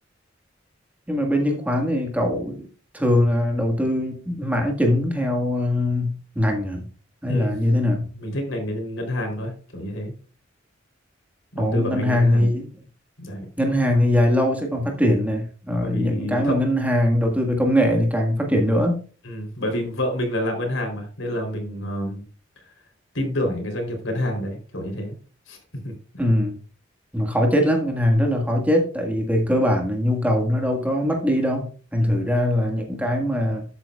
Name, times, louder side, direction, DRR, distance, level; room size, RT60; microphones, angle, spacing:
voice 1, 1.1-2.7 2.9-6.9 7.2-8.1 11.6-12.7 13.6-19.0 26.2-26.6 27.1-33.6, left 1 dB, 10° right, 1.6 m, -21 dB
voice 2, 8.2-10.1 11.5-12.5 13.2-13.5 15.7-16.9 19.2-22.2 23.1-25.2 25.5-25.6 25.8-25.9 32.0-32.4, left 1 dB, 85° left, 3.5 m, -28 dB
12.5 x 8.2 x 2.4 m
head